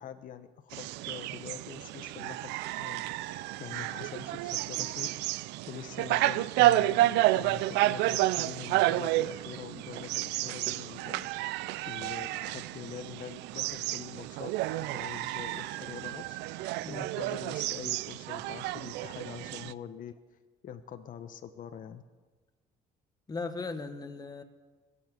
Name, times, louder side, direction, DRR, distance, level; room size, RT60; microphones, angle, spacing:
voice 1, 0.0-2.5 2.8-3.0 3.3-5.1 5.7-11.3 11.9-16.4 16.9-20.1 20.6-22.0, left 8 dB, 50° left, 9 dB, 0.9 m, -44 dB
sound 1, 0.7-19.7, right 16 dB, 90° right, 0.4 m, -30 dB
voice 2, 23.3-24.4, left 3 dB, 20° left, 8 dB, 1.4 m, -37 dB
20.5 x 7.1 x 8.3 m, 1.4 s
cardioid pair, 110°, 17 cm